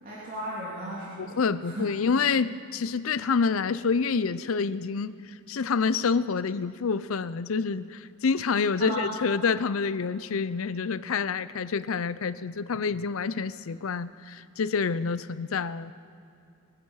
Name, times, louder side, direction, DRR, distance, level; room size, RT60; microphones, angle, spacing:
voice 1, 0.0-1.9 8.8-9.1, right 1 dB, 40° right, -7 dB, 3.0 m, -35 dB
voice 2, 1.2-15.9, left 5 dB, 75° left, 15 dB, 0.5 m, -27 dB
23.5 x 10.0 x 5.6 m, 2.6 s
head